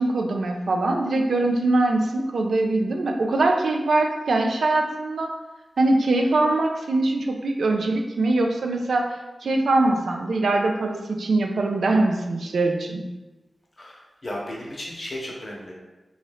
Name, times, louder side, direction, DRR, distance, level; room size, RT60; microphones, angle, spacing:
voice 1, 0.0-5.3 5.8-9.1 9.4-13.0, right 2 dB, 85° right, 3 dB, 0.4 m, -22 dB
voice 2, 13.8-15.7, left 1 dB, 50° left, -3 dB, 0.8 m, -35 dB
2.6 x 2.3 x 3.3 m, 1.1 s
cardioid pair, 65°, 0 cm